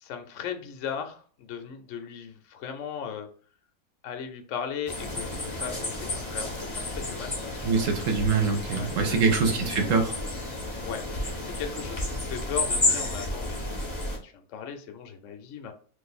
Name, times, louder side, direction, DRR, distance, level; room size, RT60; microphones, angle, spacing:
voice 1, 0.0-3.3 4.0-7.9 8.7-9.2 10.8-13.9 14.2-15.7, left 7 dB, 65° left, 5 dB, 0.8 m, -37 dB
sound 1, 4.9-14.2, left 2 dB, 35° left, 0.4 m, -31 dB
voice 2, 7.6-10.2, right 4 dB, 65° right, 4 dB, 0.9 m, -24 dB
2.6 x 2.5 x 4.0 m, 0.42 s
omnidirectional pair, 1.7 m